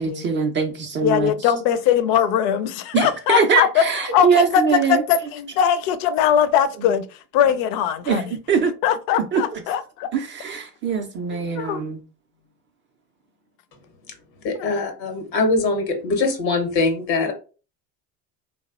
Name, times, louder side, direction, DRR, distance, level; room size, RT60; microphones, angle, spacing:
voice 1, 0.0-1.5 2.9-5.0 6.8-6.9 8.1-8.7 9.3-9.6 10.1-12.0, right 6 dB, 25° right, 0.3 m, -22 dB
voice 2, 1.0-3.8 4.1-7.1 7.3-8.2 8.8-10.1 11.6-11.9 14.6-14.7, left 9 dB, 60° left, 0.5 m, -20 dB
voice 3, 14.4-17.3, left 3 dB, 90° left, 0.9 m, -22 dB
3.2 x 2.1 x 2.3 m
hypercardioid pair, 80°, 50 cm